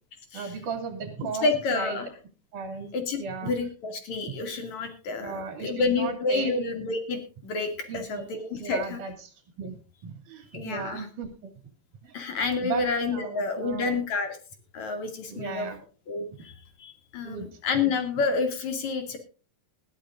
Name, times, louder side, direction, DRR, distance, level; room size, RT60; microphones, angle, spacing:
voice 1, 0.3-2.0 2.5-2.9 3.2-3.5 5.2-6.5 7.9-8.2 8.6-9.8 10.0-11.5 12.0-12.1 12.6-14.0 15.3-15.8 17.2-17.6, right 5 dB, 70° right, 5 dB, 4.0 m, -36 dB
voice 2, 1.4-2.1 2.9-9.0 10.5-11.1 12.1-14.4 14.7-15.7 16.1-19.2, left 4 dB, 60° left, 6 dB, 3.6 m, -29 dB
20.5 x 13.5 x 2.5 m, 0.36 s
omnidirectional pair, 3.7 m